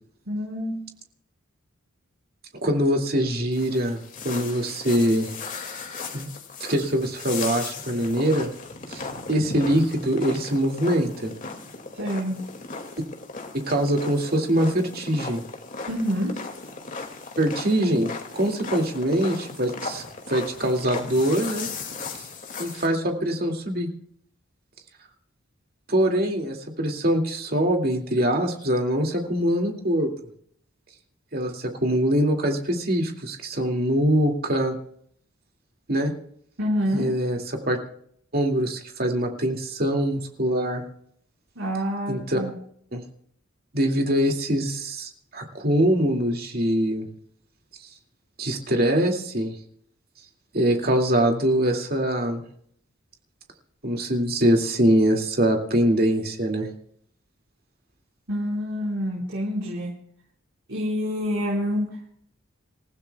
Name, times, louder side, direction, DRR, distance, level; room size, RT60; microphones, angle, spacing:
voice 1, 0.3-0.8 11.9-12.4 15.9-16.4 36.6-37.1 41.5-42.5 58.3-59.9 60.7-61.9, equal, 70° right, -5 dB, 4.7 m, -27 dB
voice 2, 2.6-5.3 6.1-6.3 6.6-8.5 8.9-11.3 13.7-15.4 17.4-21.7 22.6-23.9 25.9-30.1 31.3-34.8 35.9-36.1 36.9-37.8 38.3-40.8 42.1-42.4 42.9-43.0 43.7-47.1 48.4-49.5 50.5-52.4 53.8-56.7, right 1 dB, 45° right, 3 dB, 2.4 m, -23 dB
sound 1, 3.5-22.9, left 4 dB, 40° left, 2.3 m, -37 dB
27.0 x 15.5 x 2.4 m, 0.64 s
head